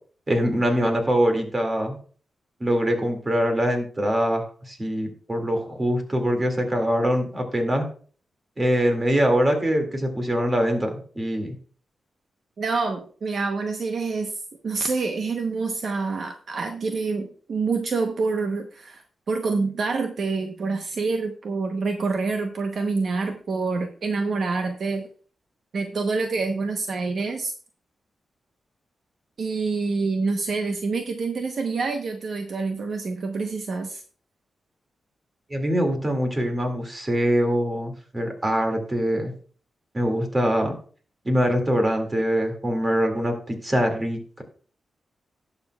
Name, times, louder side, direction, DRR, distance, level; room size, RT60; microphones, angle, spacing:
voice 1, 0.3-2.0 2.6-7.9 8.6-11.5 35.5-39.3 39.9-40.7 41.2-44.4, equal, 20° right, 4 dB, 2.1 m, -23 dB
voice 2, 12.6-14.3 14.6-25.1 25.7-27.5 29.4-34.0, right 4 dB, 55° right, 5 dB, 0.9 m, -27 dB
18.5 x 6.8 x 2.3 m, 0.42 s
wide cardioid pair, 155°, 0 cm